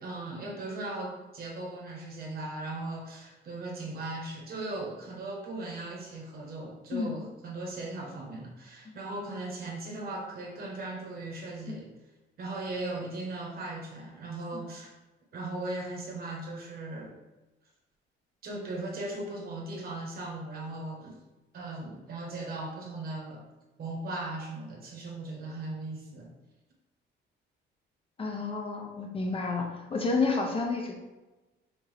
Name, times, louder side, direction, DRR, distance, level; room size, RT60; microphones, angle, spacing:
voice 1, 0.0-11.9 12.4-14.9 15.3-17.2 18.4-21.2 21.5-23.4 23.8-26.3, right 2 dB, 50° right, 0 dB, 1.1 m, -38 dB
voice 2, 28.2-30.9, left 4 dB, 25° left, 1 dB, 0.5 m, -30 dB
5.8 x 2.7 x 3.3 m, 1.1 s
cardioid pair, 160°, 20 cm